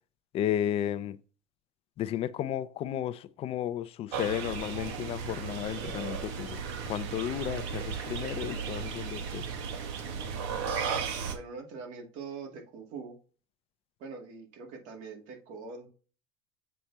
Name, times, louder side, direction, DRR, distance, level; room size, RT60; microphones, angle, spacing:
voice 1, 0.3-1.2 2.0-6.6 6.9-9.4, left 11 dB, 45° left, 0.6 m, -33 dB
sound 1, 4.1-11.3, right 6 dB, 80° right, 1.3 m, -35 dB
voice 2, 11.3-13.2 14.0-15.9, right 4 dB, 65° right, 2.3 m, -43 dB
7.4 x 4.2 x 3.4 m
supercardioid pair, 115°, 14 cm